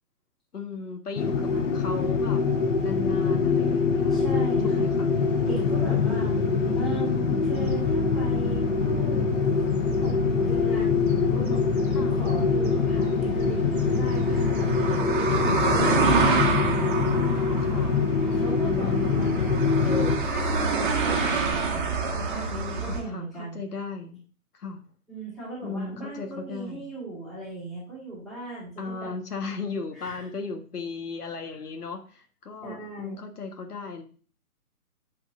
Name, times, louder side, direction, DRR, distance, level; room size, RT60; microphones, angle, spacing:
voice 1, 0.5-2.4 2.8-4.2 4.6-5.1 5.8-6.6 11.9-12.2 17.1-18.0 18.6-19.4 22.8-24.2 24.5-24.8 25.6-26.9 28.8-34.0, left 4 dB, 80° left, 4 dB, 1.6 m, -36 dB
sound 1, 1.2-20.2, left 5 dB, 55° left, 1.1 m, -24 dB
voice 2, 4.1-4.9 5.4-6.3 6.7-9.4 9.9-17.0 18.3-19.4 19.8-23.6 25.1-29.1 29.9-30.2 32.6-33.2, right 2 dB, ahead, -10 dB, 1.8 m, -38 dB
sound 2, 7.6-23.0, right 4 dB, 35° right, 1.2 m, -29 dB
7.3 x 5.9 x 2.6 m, 0.39 s
hypercardioid pair, 165°, 46 cm